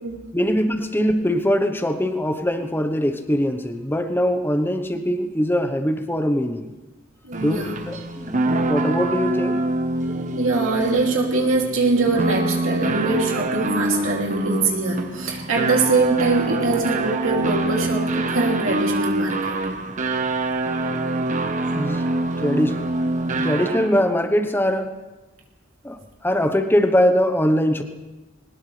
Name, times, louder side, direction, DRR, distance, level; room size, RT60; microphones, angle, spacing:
voice 1, 0.3-6.7 7.4-9.6 21.7-22.0 22.4-22.8 23.3-24.9 25.8-27.8, equal, 10° left, 7 dB, 1.0 m, -22 dB
voice 2, 7.2-7.7 10.4-19.6, right 3 dB, 90° right, -1 dB, 2.8 m, -23 dB
sound 1, 7.3-24.1, right 2 dB, 40° right, 1.1 m, -25 dB
21.5 x 19.0 x 3.3 m, 1.1 s
head